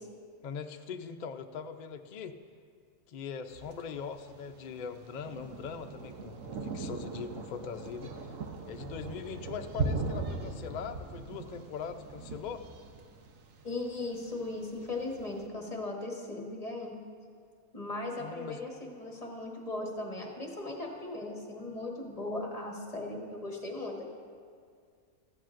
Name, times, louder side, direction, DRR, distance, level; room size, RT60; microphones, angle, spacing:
voice 1, 0.4-2.4 3.1-8.3 8.7-12.6 18.2-18.6, left 6 dB, 90° left, 7 dB, 0.4 m, -41 dB
Thunder, 3.5-15.4, right 3 dB, 65° right, 1.2 m, -40 dB
voice 2, 13.6-16.9 17.7-24.0, left 2 dB, 25° left, -1 dB, 1.3 m, -38 dB
14.5 x 13.5 x 2.5 m, 2.1 s
omnidirectional pair, 1.5 m